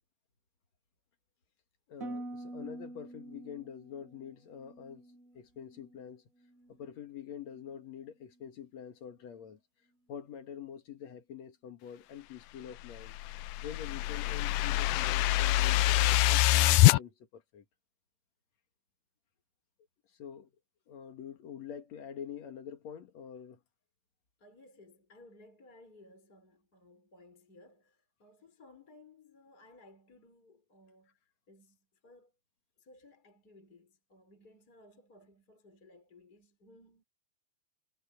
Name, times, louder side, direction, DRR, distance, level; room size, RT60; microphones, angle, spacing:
voice 1, 1.9-5.1 5.3-6.2 6.7-9.6 10.1-13.2 13.6-17.7 20.1-20.5 20.9-23.6, left 8 dB, 60° left, 2.7 m, -46 dB
Harp, 2.0-6.1 6.4-6.9 7.5-7.8, right 1 dB, 85° right, 0.7 m, -46 dB
sound 1, 12.9-17.0, left 17 dB, 80° left, 2.2 m, -25 dB
voice 2, 24.4-32.3 32.8-37.0, left 2 dB, 25° left, 5.8 m, -59 dB
omnidirectional pair, 3.8 m